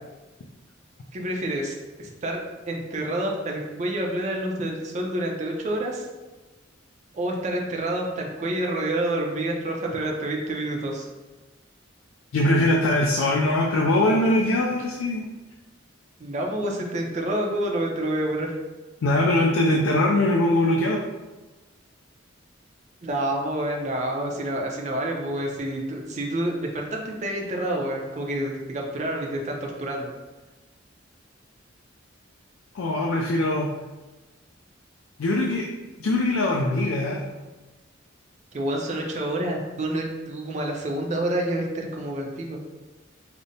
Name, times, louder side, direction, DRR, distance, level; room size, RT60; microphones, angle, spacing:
voice 1, 1.1-6.1 7.1-11.1 16.2-18.5 23.0-30.1 38.5-42.6, right 1 dB, 35° right, 0 dB, 0.4 m, -28 dB
voice 2, 12.3-15.3 19.0-21.0 32.7-33.7 35.2-35.7 36.0-37.2, left 1 dB, 90° left, 0 dB, 0.4 m, -22 dB
5.0 x 2.0 x 2.7 m, 1.2 s
head